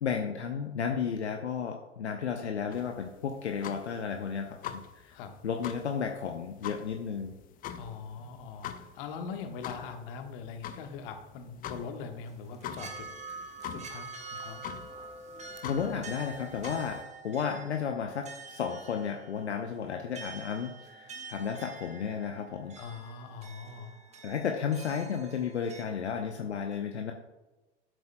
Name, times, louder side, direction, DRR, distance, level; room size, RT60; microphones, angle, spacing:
voice 1, 0.0-5.2 5.4-7.4 15.6-22.8 24.2-27.1, left 7 dB, 75° left, 4 dB, 0.8 m, -33 dB
sound 1, 2.7-17.0, left 9 dB, 25° left, 0.6 m, -45 dB
voice 2, 7.7-13.1 13.7-14.7 22.8-24.2, left 5 dB, 50° left, 5 dB, 1.3 m, -42 dB
sound 2, 12.3-25.8, right 4 dB, 20° right, 1.2 m, -46 dB
13.5 x 7.9 x 2.2 m, 1.1 s
figure-of-eight pair, 85°, 34 cm